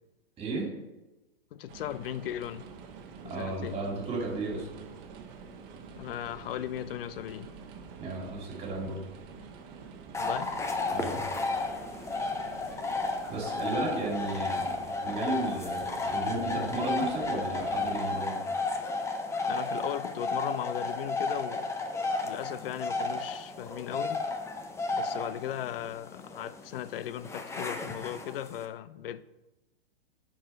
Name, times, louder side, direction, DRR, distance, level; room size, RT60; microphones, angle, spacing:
voice 1, 0.4-0.7 3.2-4.7 8.0-9.0 10.9-11.2 13.3-14.7 15.0-18.3, right 3 dB, 20° right, 2.6 m, -34 dB
voice 2, 1.5-2.7 3.2-3.8 6.0-7.5 10.2-10.5 19.5-21.7 22.2-24.3 24.9-29.2, left 11 dB, 70° left, 0.6 m, -37 dB
sound 1, 1.7-18.0, right 5 dB, 35° right, 1.2 m, -47 dB
sound 2, 10.1-28.6, left 3 dB, 10° left, 0.6 m, -33 dB
10.0 x 4.8 x 4.5 m
hypercardioid pair, 130°, 30 cm